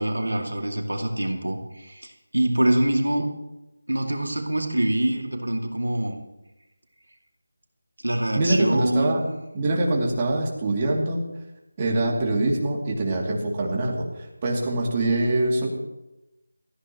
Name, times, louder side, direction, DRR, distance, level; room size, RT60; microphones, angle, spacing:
voice 1, 0.0-3.3 3.9-6.2 8.0-9.2, right 1 dB, 90° right, 3 dB, 2.4 m, -25 dB
voice 2, 8.3-9.3 9.5-11.2 11.8-15.7, right 2 dB, 25° right, -2 dB, 2.7 m, -24 dB
20.0 x 14.5 x 3.1 m, 0.96 s
figure-of-eight pair, 165°, 0 cm